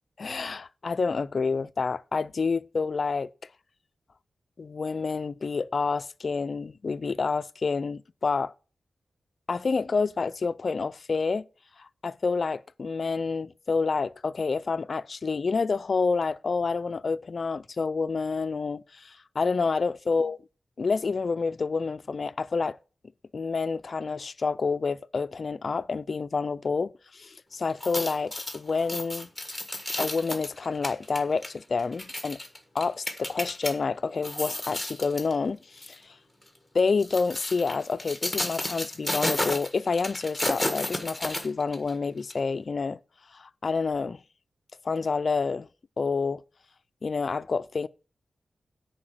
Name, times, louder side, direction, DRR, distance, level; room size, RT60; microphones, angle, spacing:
voice 1, 0.2-3.3 4.6-8.5 9.5-11.4 11.8-20.4 20.8-22.8 23.3-29.3 30.0-32.4 32.7-36.1 36.7-43.0 43.3-44.2 44.8-45.7 46.0-46.4 47.0-47.9, left 4 dB, 45° left, 0.4 m, -28 dB
sound 1, 27.7-33.7 34.1-35.3 35.8-36.0 36.8-41.9 42.3-42.4, left 1 dB, ahead, 1.7 m, -32 dB
10.5 x 4.7 x 7.6 m
wide cardioid pair, 170°, 0 cm